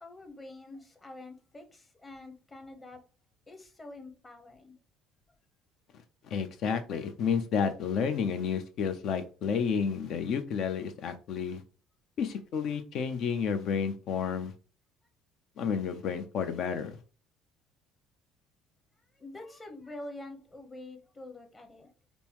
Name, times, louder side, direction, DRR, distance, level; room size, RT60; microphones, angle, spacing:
voice 1, 0.0-3.0 3.5-4.8 19.1-21.9, left 2 dB, 20° left, 1.0 m, -46 dB
voice 2, 6.2-11.6 12.2-14.5 15.6-17.0, left 6 dB, 60° left, 0.7 m, -31 dB
5.3 x 2.1 x 3.0 m
cardioid pair, 110°, 0 cm